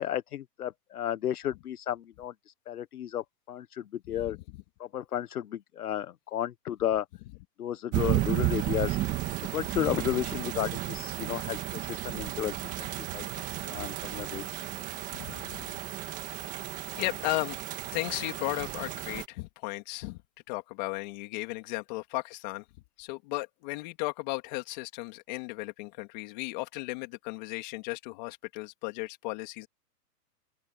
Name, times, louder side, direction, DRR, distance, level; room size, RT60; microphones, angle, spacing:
voice 1, 0.0-2.3 2.7-4.4 4.8-7.0 7.6-9.0 9.5-12.5 13.1-13.2 13.7-14.5, left 11 dB, 65° left, 1.2 m, -33 dB
voice 2, 4.1-4.6 15.1-15.7 16.3-16.4 16.9-17.6 17.9-20.2 20.5-22.6 23.0-29.7, left 23 dB, 25° left, 3.2 m, -35 dB
sound 1, 7.9-19.3, right 15 dB, 15° right, 1.9 m, -33 dB
open air
hypercardioid pair, 170°, 48 cm